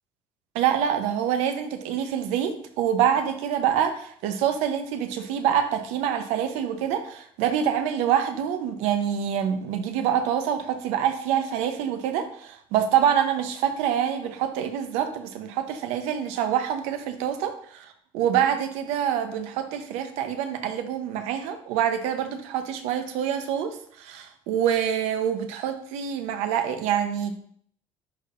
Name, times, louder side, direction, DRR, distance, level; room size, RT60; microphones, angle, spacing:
voice 1, 0.5-17.9 18.1-27.4, right 9 dB, 85° right, 8 dB, 0.8 m, -26 dB
10.5 x 4.3 x 2.5 m, 0.62 s
cardioid pair, 125°, 11 cm